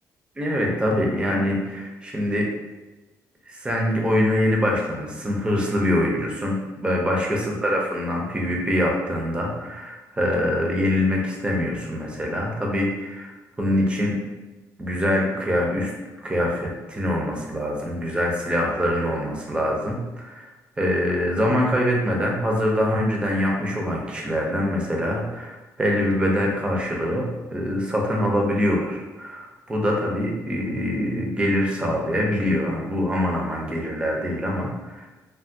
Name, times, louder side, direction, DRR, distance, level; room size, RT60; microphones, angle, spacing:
voice 1, 0.4-2.5 3.5-13.3 13.6-14.2 14.8-15.9 16.2-20.5 20.8-34.9, equal, 15° right, -1 dB, 0.5 m, -24 dB
3.4 x 2.2 x 2.5 m, 1.2 s
cardioid pair, 130°, 7 cm